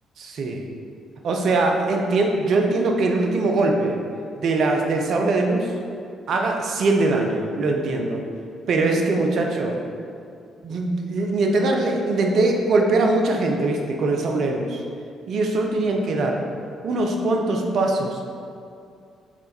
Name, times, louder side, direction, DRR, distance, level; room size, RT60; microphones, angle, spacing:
voice 1, 0.2-0.6 1.2-4.0 4.4-5.7 6.3-8.2 8.7-9.8 10.6-14.8 15.3-16.4 16.8-18.3, right 2 dB, 60° right, 2 dB, 0.8 m, -22 dB
6.1 x 3.9 x 4.4 m, 2.4 s
hypercardioid pair, 50°, 0 cm